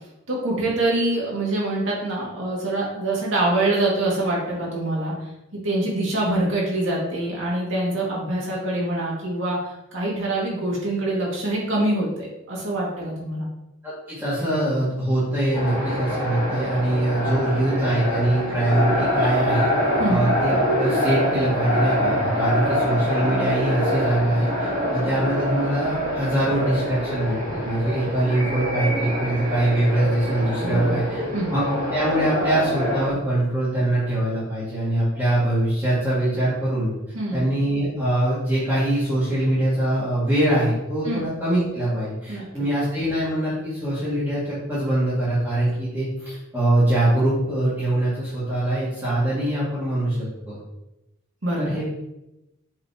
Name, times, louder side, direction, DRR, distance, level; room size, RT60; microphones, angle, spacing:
voice 1, 0.3-5.1 5.5-9.6 9.9-13.5 19.9-20.3 30.6-31.1 31.3-31.5 37.1-37.4 41.0-41.3 42.3-42.6 51.4-51.8, right 1 dB, 60° right, -4 dB, 2.4 m, -25 dB
voice 2, 13.8-19.7 20.1-31.2 31.5-31.6 31.9-36.9 37.3-50.6 51.6-51.8, right 1 dB, 10° right, -11 dB, 2.4 m, -23 dB
sound 1, 15.5-33.1, equal, 30° right, 2.6 m, -25 dB
7.6 x 5.4 x 3.1 m, 0.91 s
head